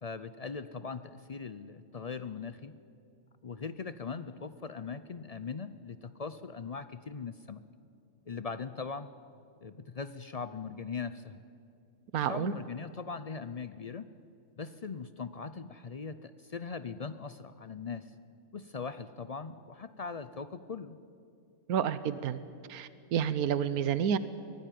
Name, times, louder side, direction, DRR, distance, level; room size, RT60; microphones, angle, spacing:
voice 1, 0.0-2.7 3.4-7.6 8.3-9.1 9.6-11.4 12.2-14.1 14.6-18.1 18.5-21.0, left 5 dB, 60° left, 13 dB, 0.4 m, -40 dB
voice 2, 12.1-12.5 21.7-22.4 22.7-24.2, right 8 dB, 90° right, 14 dB, 1.3 m, -29 dB
23.5 x 17.5 x 9.3 m, 2.5 s
omnidirectional pair, 1.5 m